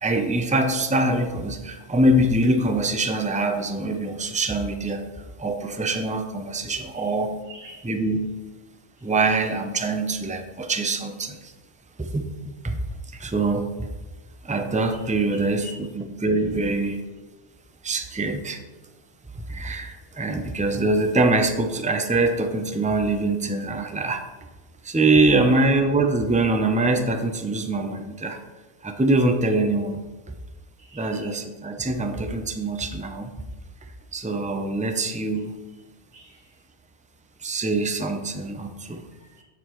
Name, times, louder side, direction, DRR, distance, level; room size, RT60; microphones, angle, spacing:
voice 1, 0.0-5.0 5.4-7.3 7.9-8.2 9.0-11.5 12.0-12.8 13.1-13.9 14.4-15.7 16.0-17.0 17.8-18.6 19.5-24.2 24.8-28.4 28.8-30.0 30.9-33.3 34.1-35.6 37.4-39.0, right 2 dB, 10° right, 6 dB, 0.5 m, -24 dB
voice 2, 7.4-7.8 9.0-9.1 14.9-15.8 16.4-16.5 16.8-16.9 30.8-31.4 36.1-36.5 38.9-39.4, equal, 80° right, -6 dB, 2.8 m, -48 dB
14.5 x 6.5 x 3.1 m, 1.2 s
omnidirectional pair, 1.2 m